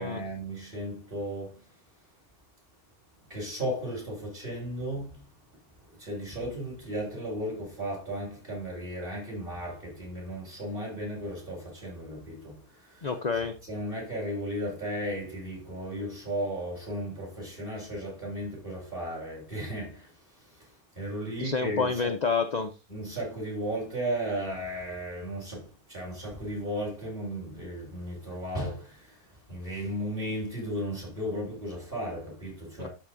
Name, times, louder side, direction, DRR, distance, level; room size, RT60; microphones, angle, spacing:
voice 1, 0.0-1.7 3.3-5.3 5.9-13.1 13.6-22.1 22.9-32.9, equal, 35° right, 5.1 m, -35 dB
voice 2, 13.0-13.6 21.4-22.7 32.8-32.9, left 4 dB, 55° left, 0.4 m, -28 dB
12.0 x 4.1 x 3.8 m
omnidirectional pair, 1.6 m